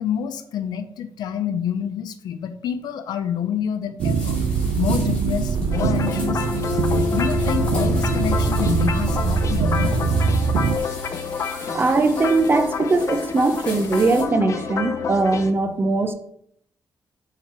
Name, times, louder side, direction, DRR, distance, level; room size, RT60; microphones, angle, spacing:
voice 1, 0.0-4.4 4.8-6.4 7.1-10.0, left 8 dB, 90° left, 9 dB, 0.7 m, -27 dB
sound 1, 4.0-14.2, left 2 dB, 15° left, 3.0 m, -40 dB
sound 2, 4.0-10.8, right 5 dB, 80° right, 0.6 m, -22 dB
sound 3, 5.7-15.5, left 6 dB, 50° left, 0.7 m, -28 dB
voice 2, 11.5-16.1, right 3 dB, 30° right, 7 dB, 0.8 m, -20 dB
7.4 x 3.9 x 4.6 m, 0.70 s
cardioid pair, 130°, 7 cm